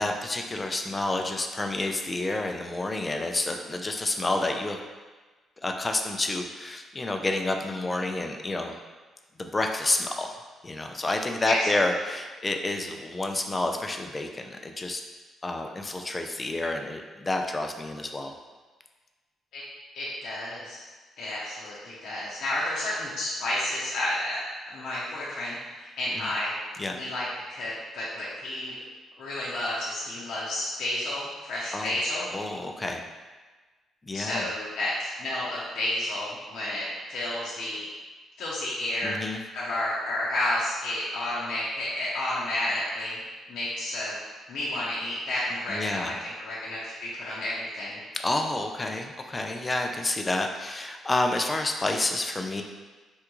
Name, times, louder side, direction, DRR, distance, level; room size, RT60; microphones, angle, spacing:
voice 1, 0.0-4.8 5.6-8.8 9.4-10.3 10.6-15.0 15.4-18.3 26.1-26.3 26.8-27.0 31.7-31.9 32.3-33.0 34.0-34.5 39.0-39.4 45.7-46.1 48.2-52.6, left 2 dB, 25° left, 4 dB, 0.3 m, -29 dB
voice 2, 19.9-20.8 21.2-24.4 24.7-26.5 27.0-28.7 29.2-32.3 34.1-37.9 38.4-39.2 39.5-43.2 43.5-44.2 44.5-48.0, left 1 dB, 75° left, -7 dB, 0.6 m, -31 dB
3.5 x 2.3 x 2.9 m, 1.3 s
cardioid pair, 90°, 0 cm